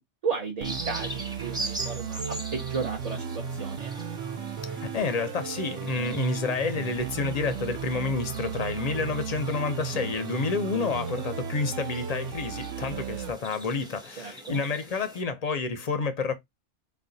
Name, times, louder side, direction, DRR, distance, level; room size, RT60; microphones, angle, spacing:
voice 1, 0.2-3.9 14.2-14.6, right 5 dB, 45° right, 0.6 m, -34 dB
sound 1, 0.6-15.2, right 1 dB, 5° right, 0.6 m, -42 dB
sound 2, 0.6-13.3, right 7 dB, 85° right, 1.0 m, -35 dB
voice 2, 4.7-16.3, left 4 dB, 50° left, 0.5 m, -29 dB
4.1 x 2.3 x 3.7 m
omnidirectional pair, 1.2 m